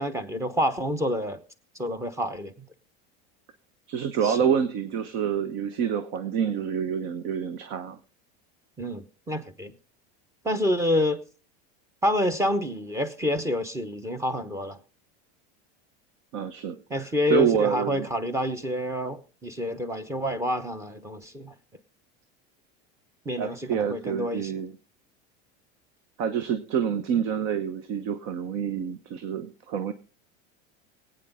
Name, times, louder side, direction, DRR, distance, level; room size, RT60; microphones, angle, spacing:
voice 1, 0.0-1.4 1.8-2.7 4.2-4.4 8.8-9.7 10.4-11.2 12.0-14.8 16.9-21.5 23.2-24.5, left 1 dB, 10° right, 1.0 m, -28 dB
voice 2, 3.9-8.0 16.3-18.1 23.4-24.7 26.2-29.9, right 8 dB, 55° right, 1.1 m, -27 dB
19.5 x 9.1 x 3.7 m
supercardioid pair, 145°, 30 cm